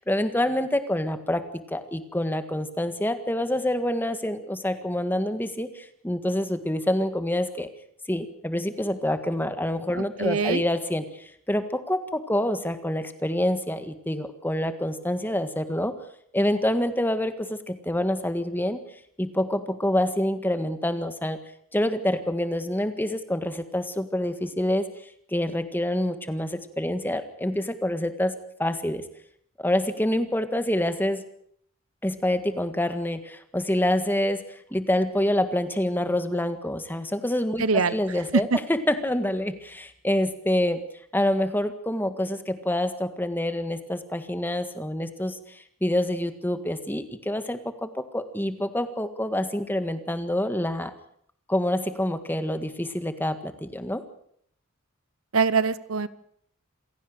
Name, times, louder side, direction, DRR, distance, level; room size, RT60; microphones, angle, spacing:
voice 1, 0.0-7.7 8.1-15.9 16.3-18.8 19.2-21.4 21.7-24.9 25.3-28.3 28.6-29.0 29.6-31.2 32.0-40.8 41.1-50.9 51.5-54.0, left 1 dB, 10° left, 10 dB, 1.7 m, -27 dB
voice 2, 10.0-10.7 37.6-37.9 38.3-38.6 55.3-56.1, right 4 dB, 70° right, 17 dB, 0.9 m, -23 dB
27.5 x 17.0 x 6.7 m, 0.66 s
head